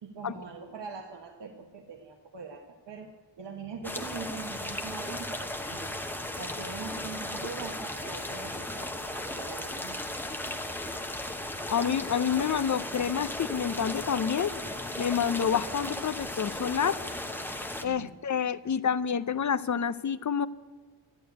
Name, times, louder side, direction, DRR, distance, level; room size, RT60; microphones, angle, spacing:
voice 1, 0.0-3.1 3.4-6.0 6.3-9.0 9.3-10.0 10.4-10.6 17.8-18.2, right 5 dB, 60° right, 4 dB, 1.3 m, -42 dB
sound 1, 3.8-17.8, left 1 dB, 5° left, 0.9 m, -36 dB
voice 2, 11.7-14.5 15.0-17.0 17.8-20.5, left 7 dB, 40° left, 15 dB, 0.5 m, -28 dB
12.5 x 11.5 x 9.6 m, 1.5 s
wide cardioid pair, 180°, 48 cm